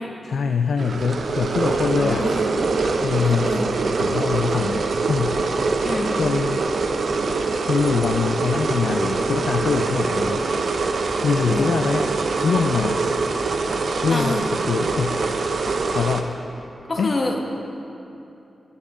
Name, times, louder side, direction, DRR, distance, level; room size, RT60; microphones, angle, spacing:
voice 1, 0.2-2.3 3.0-3.6 4.0-5.5 6.1-6.6 7.7-10.4 11.2-12.1 12.4-13.0 14.0-15.2 15.9-16.3 17.0-17.2, left 5 dB, 75° left, 6 dB, 0.4 m, -23 dB
sound 1, 0.8-16.2, right 3 dB, 70° right, 0.6 m, -24 dB
voice 2, 2.0-2.5 3.2-3.6 5.8-6.1 11.5-11.8 14.1-14.4 16.9-17.4, left 2 dB, 40° left, 1 dB, 1.1 m, -27 dB
13.5 x 5.4 x 6.0 m, 2.8 s
wide cardioid pair, 120°, 0 cm